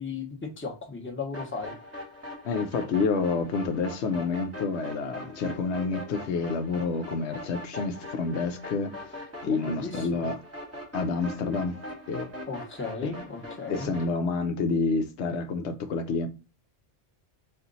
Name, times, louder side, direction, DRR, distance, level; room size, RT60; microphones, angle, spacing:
voice 1, 0.0-1.7 9.4-10.3 12.5-13.9, left 4 dB, 10° left, 0.9 m, -36 dB
sound 1, 1.3-14.1, left 1 dB, 15° right, 1.2 m, -41 dB
voice 2, 2.4-10.4 10.9-11.8 12.1-12.3 13.0-13.1 13.7-16.3, left 4 dB, 75° left, 0.9 m, -29 dB
4.3 x 2.4 x 3.8 m
omnidirectional pair, 1.2 m